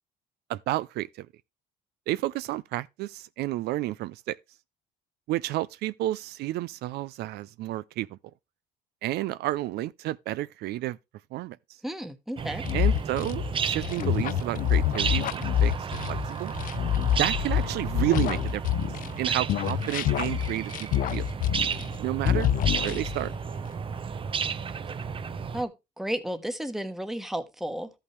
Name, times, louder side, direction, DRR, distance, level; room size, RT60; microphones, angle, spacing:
voice 1, 0.5-1.3 2.1-4.4 5.3-8.2 9.0-11.0 11.3-11.6 12.7-15.7 16.1-16.5 17.2-18.6 19.2-21.2 22.0-22.5 22.8-23.3, right 15 dB, 75° right, 0.4 m, -31 dB
voice 2, 11.8-12.6 25.5-27.9, right 1 dB, ahead, 1.1 m, -33 dB
sound 1, 12.4-25.6, right 6 dB, 30° right, 0.6 m, -33 dB
sound 2, 12.6-19.2 19.5-22.0 22.2-23.3, left 11 dB, 55° left, 0.5 m, -27 dB
12.5 x 5.7 x 3.2 m
cardioid pair, 110°, 17 cm